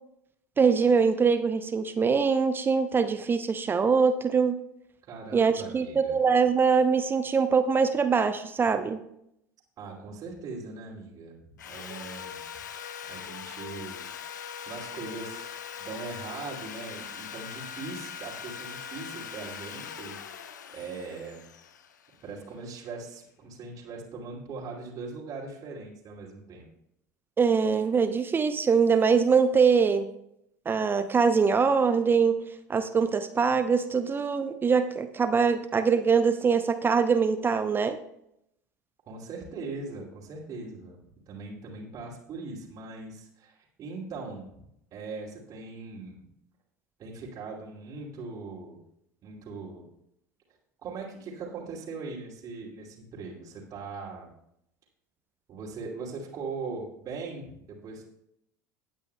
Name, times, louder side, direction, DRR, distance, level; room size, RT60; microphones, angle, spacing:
voice 1, 0.6-4.5 5.3-9.0 27.4-30.1 30.7-32.4 32.7-38.0, right 5 dB, 20° right, 10 dB, 0.6 m, -23 dB
voice 2, 5.1-6.2 9.8-12.4 13.1-14.0 14.5-15.5 15.8-20.2 20.7-21.4 22.2-26.7 39.1-41.0 41.3-46.2 47.0-48.8 49.2-49.8 50.8-54.3 55.5-58.0, right 4 dB, 35° right, -4 dB, 2.6 m, -40 dB
Sawing, 11.6-22.6, left 8 dB, 70° left, 0.7 m, -41 dB
18.0 x 9.0 x 2.3 m, 0.78 s
figure-of-eight pair, 75°, 10 cm